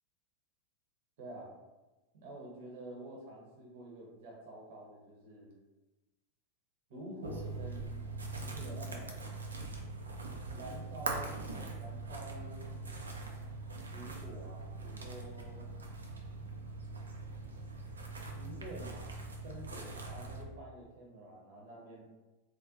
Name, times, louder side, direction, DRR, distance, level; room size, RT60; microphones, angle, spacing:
voice 1, 1.2-1.5 2.1-5.5 6.9-8.0 8.4-9.2 10.5-11.4 11.8-12.8 13.8-15.7 18.3-19.1 19.4-22.1, right 1 dB, 50° right, -2 dB, 0.8 m, -48 dB
sound 1, 7.2-20.4, right 3 dB, 75° right, 0.4 m, -42 dB
2.5 x 2.2 x 2.7 m, 1.1 s
figure-of-eight pair, 90°, 0 cm